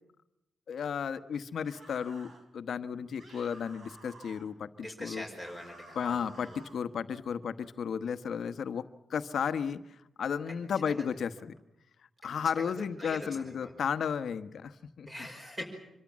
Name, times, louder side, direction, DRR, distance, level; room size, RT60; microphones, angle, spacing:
voice 1, 0.7-5.2 5.9-9.8 10.2-11.5 12.2-15.3, left 7 dB, 65° left, 10 dB, 1.2 m, -34 dB
sound 1, 1.6-2.4 3.2-4.5 5.4-6.9, right 2 dB, 50° right, 4.0 m, -53 dB
voice 2, 4.8-6.6 10.9-11.0 12.6-13.7 15.1-15.7, left 1 dB, 15° right, 1 dB, 5.4 m, -43 dB
26.0 x 23.5 x 7.5 m, 0.85 s
wide cardioid pair, 175°, 0 cm